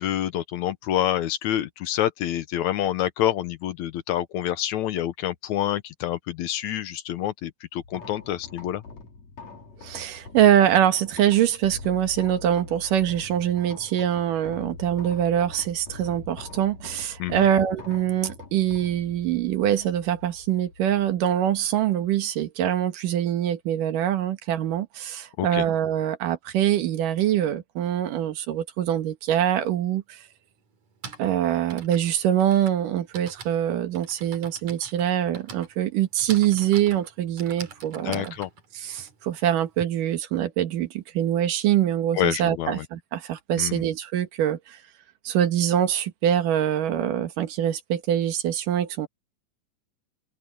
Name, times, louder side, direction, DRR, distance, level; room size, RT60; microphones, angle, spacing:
voice 1, 0.0-8.8 17.2-17.4 25.4-25.6 38.1-38.5 42.1-42.9 43.6-43.8, left 12 dB, 70° left, 2.1 m, -27 dB
sound 1, 7.8-22.1, left 3 dB, 55° left, 5.1 m, -43 dB
voice 2, 9.8-30.2 31.2-38.3 38.7-44.8 45.2-49.1, right 10 dB, 85° right, 3.1 m, -24 dB
Typing, 29.7-29.8 30.7-39.8, right 5 dB, 60° right, 4.3 m, -44 dB
open air
omnidirectional pair, 3.7 m